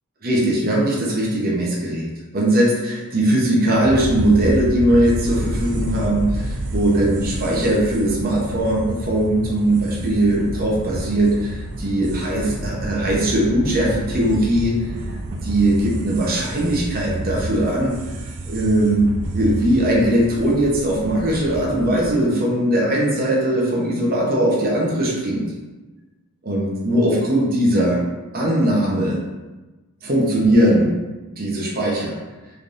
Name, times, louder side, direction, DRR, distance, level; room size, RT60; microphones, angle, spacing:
voice 1, 0.2-14.8 15.4-18.0 18.5-19.0 19.3-25.5 26.4-28.1 28.3-29.2 30.0-30.9 31.4-32.1, right 1 dB, 40° right, -4 dB, 0.9 m, -20 dB
sound 1, 3.8-22.1, right 1 dB, 85° right, 0.5 m, -29 dB
4.1 x 3.3 x 2.6 m, 1.2 s
head